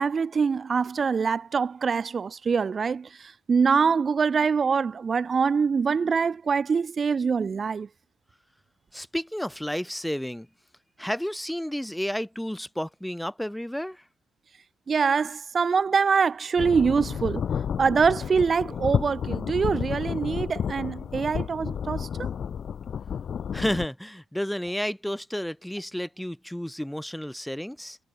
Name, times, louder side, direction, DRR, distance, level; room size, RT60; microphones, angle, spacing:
voice 1, 0.0-7.9 14.9-17.5 17.8-22.3, right 5 dB, 40° right, 4.4 m, -24 dB
voice 2, 8.9-10.5 11.0-14.0 23.5-28.0, equal, 5° left, 5.2 m, -31 dB
sound 1, 16.6-23.9, left 7 dB, 55° left, 6.2 m, -31 dB
cardioid pair, 90°, 0 cm